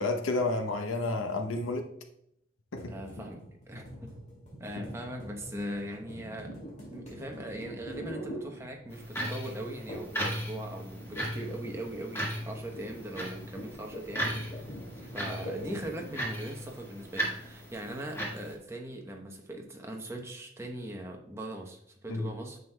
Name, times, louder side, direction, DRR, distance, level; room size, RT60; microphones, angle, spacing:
voice 1, 0.0-1.9 2.7-2.9 22.1-22.3, left 2 dB, 80° left, 0.8 m, -30 dB
sound 1, 2.8-9.1 9.9-10.3 10.5-16.2, equal, 35° left, 2.3 m, -44 dB
voice 2, 2.9-4.2 4.6-6.6 6.9-22.6, right 1 dB, 15° right, 0.8 m, -40 dB
sound 2, 8.9-18.5, equal, 10° left, 1.6 m, -37 dB
9.2 x 6.2 x 2.2 m
head